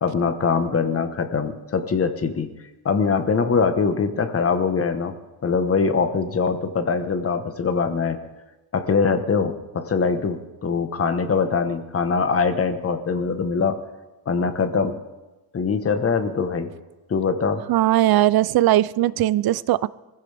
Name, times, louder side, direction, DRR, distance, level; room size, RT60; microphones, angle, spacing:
voice 1, 0.0-2.5 2.8-5.1 5.4-8.2 8.7-13.8 14.3-15.0 15.5-16.7 17.1-17.6, left 5 dB, 35° left, 8 dB, 1.2 m, -22 dB
voice 2, 17.7-19.9, right 14 dB, 65° right, 19 dB, 0.5 m, -19 dB
24.0 x 15.5 x 3.5 m, 1.1 s
wide cardioid pair, 155°, 39 cm